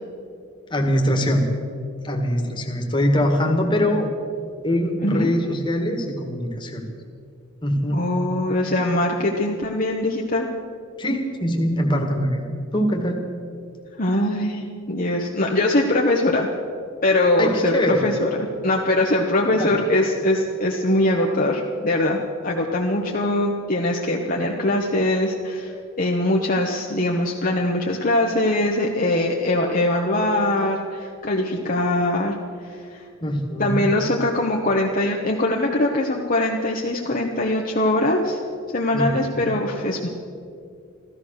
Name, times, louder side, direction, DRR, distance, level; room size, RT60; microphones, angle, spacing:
voice 1, 0.7-1.5 2.0-4.1 4.6-6.8 7.6-8.0 11.0-12.5 12.7-13.2 17.4-18.0 19.6-19.7 33.2-33.9 38.9-39.5, equal, 25° left, 2 dB, 1.9 m, -23 dB
voice 2, 7.9-10.5 14.0-16.5 17.0-32.4 32.6-33.0 33.6-38.4 38.7-40.1, left 1 dB, 40° left, 0 dB, 1.1 m, -22 dB
15.0 x 14.0 x 6.5 m, 2.4 s
head